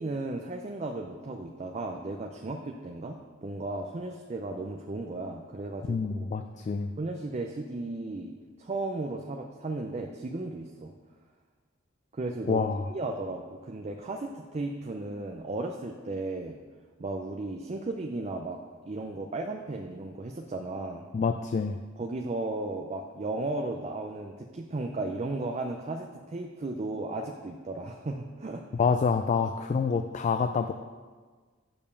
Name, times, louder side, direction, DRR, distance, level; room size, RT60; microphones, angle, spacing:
voice 1, 0.0-6.3 7.0-10.9 12.1-16.6 17.0-18.6 18.8-21.1 22.0-28.6, right 2 dB, 35° right, 2 dB, 0.5 m, -35 dB
voice 2, 5.9-6.9 12.5-12.9 21.1-21.8 28.7-30.7, left 5 dB, 35° left, 8 dB, 0.3 m, -27 dB
6.9 x 5.2 x 6.8 m, 1.5 s
head